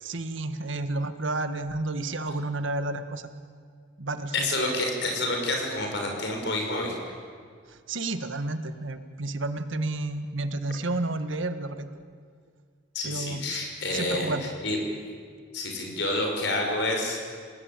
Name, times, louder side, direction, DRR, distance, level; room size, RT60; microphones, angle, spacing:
voice 1, 0.0-3.3 4.0-4.5 7.7-11.9 13.0-13.6 13.9-14.5, right 2 dB, 75° right, 10 dB, 1.6 m, -31 dB
voice 2, 4.3-7.0 12.9-14.3 14.6-14.8 15.5-17.2, left 2 dB, 60° left, 2 dB, 6.1 m, -28 dB
28.0 x 19.5 x 9.0 m, 2.1 s
head